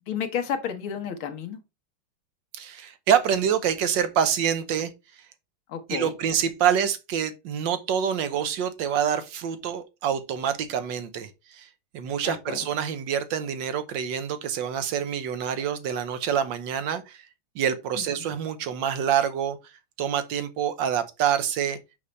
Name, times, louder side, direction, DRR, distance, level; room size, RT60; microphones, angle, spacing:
voice 1, 0.1-1.6 5.7-6.1 12.2-12.6 18.0-18.1, left 8 dB, 90° left, 2.0 m, -31 dB
voice 2, 2.5-4.9 5.9-17.3 17.5-19.7 20.0-21.8, right 8 dB, 70° right, 1.4 m, -26 dB
6.3 x 5.6 x 3.2 m
omnidirectional pair, 2.2 m